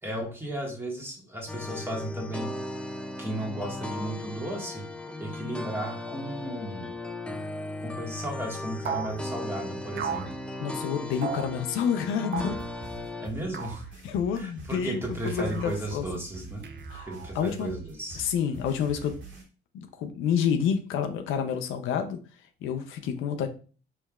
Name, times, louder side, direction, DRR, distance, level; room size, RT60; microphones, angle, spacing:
voice 1, 0.0-2.5 3.2-4.8 5.2-6.9 7.8-10.3 13.2-13.8 14.3-16.6 17.1-18.2, right 1 dB, 10° right, -1 dB, 1.5 m, -34 dB
sound 1, 1.5-13.3, left 2 dB, 5° left, 0.4 m, -37 dB
sound 2, 8.8-9.2 10.0-10.3 11.2-11.5 12.3-12.6 13.5-13.9 15.3-15.8 16.6-17.3, right 7 dB, 60° right, 0.6 m, -35 dB
voice 2, 10.6-12.6 14.0-16.1 16.9-17.1 17.3-17.7 18.2-19.1 19.7-22.2 22.6-23.5, left 7 dB, 90° left, 7 dB, 0.5 m, -28 dB
sound 3, 12.4-19.4, right 3 dB, 75° right, 1.6 m, -45 dB
4.5 x 3.4 x 2.3 m, 0.37 s
cardioid pair, 90°, 20 cm